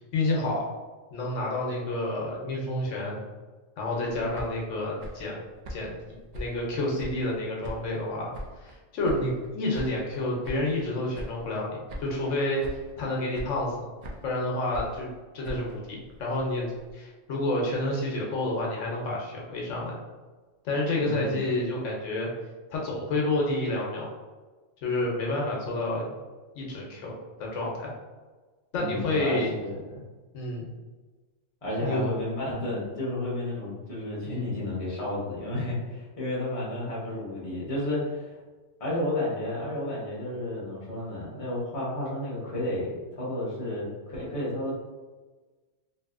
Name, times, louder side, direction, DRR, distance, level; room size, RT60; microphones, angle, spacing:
voice 1, 0.1-0.7 1.1-3.2 3.8-5.4 5.7-6.0 6.3-8.3 8.6-12.6 13.0-13.7 14.2-15.1 15.3-16.7 16.9-19.9 20.6-22.3 22.7-24.1 24.8-26.1 26.5-27.1 27.4-27.9 28.7-29.5 30.3-30.7 31.8-32.1 34.3-34.5, left 2 dB, 80° left, -2 dB, 1.0 m, -29 dB
sound 1, 4.1-7.4 7.6-8.8 9.0-10.9 11.1-11.6 11.9-12.3 12.6-13.0 13.3-14.4 14.7-16.9, equal, 70° right, 0.4 m, -42 dB
voice 2, 21.0-21.4 28.8-30.0 31.6-38.4 38.8-44.7, left 1 dB, 30° left, -6 dB, 0.9 m, -32 dB
2.8 x 2.6 x 2.4 m, 1.3 s
omnidirectional pair, 1.3 m